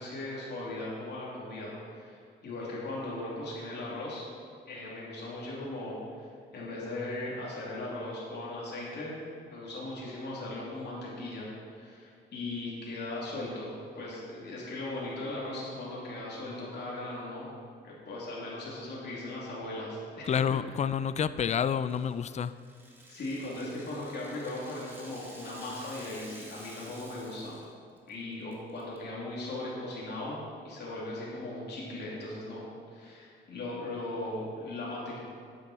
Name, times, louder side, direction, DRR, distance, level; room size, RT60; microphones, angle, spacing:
voice 1, 0.0-4.3 4.7-9.2 9.5-17.5 17.8-20.3 23.1-27.6 28.1-35.2, left 2 dB, 60° left, -6 dB, 3.0 m, -38 dB
voice 2, 20.2-22.5, left 7 dB, 35° left, 15 dB, 0.4 m, -29 dB
Rattle (instrument), 21.9-27.7 28.0-28.1 28.5-29.0, right 1 dB, 10° right, 2.4 m, -51 dB
11.5 x 9.2 x 4.4 m, 2.2 s
cardioid pair, 90°, 20 cm